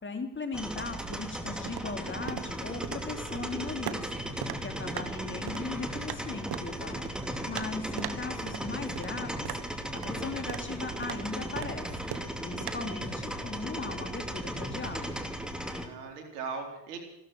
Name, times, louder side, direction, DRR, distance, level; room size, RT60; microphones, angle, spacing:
voice 1, 0.0-4.1 4.6-7.0 7.5-9.6 10.1-11.9 12.4-15.3, left 3 dB, 25° left, 5 dB, 3.4 m, -38 dB
sound 1, 0.5-15.9, equal, ahead, 2.7 m, -37 dB
sound 2, 0.9-12.7, right 11 dB, 55° right, 1.4 m, -42 dB
voice 2, 4.6-5.4 15.8-17.0, right 5 dB, 90° right, 3 dB, 4.0 m, -41 dB
16.0 x 13.5 x 6.2 m, 0.91 s
supercardioid pair, 80°, 45 cm